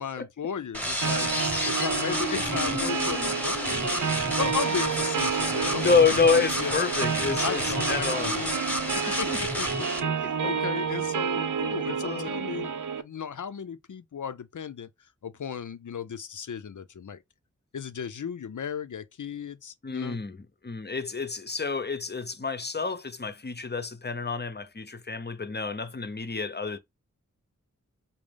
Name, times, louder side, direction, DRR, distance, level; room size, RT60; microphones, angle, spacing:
voice 1, 0.0-1.3 1.6-6.2 6.6-6.8 7.2-8.5 8.9-12.7 13.0-14.9 15.2-17.2 17.7-20.2, left 7 dB, 75° left, 0.6 m, -35 dB
sound 1, 0.7-10.0, equal, 5° left, 1.1 m, -30 dB
sound 2, 1.0-13.0, right 6 dB, 75° right, 0.5 m, -30 dB
voice 2, 2.1-3.3 5.7-8.4 9.1-9.4 9.8-10.3 12.0-12.3 19.8-20.4 20.6-26.8, left 5 dB, 35° left, 0.7 m, -28 dB
5.2 x 2.8 x 3.3 m
wide cardioid pair, 65°, 31 cm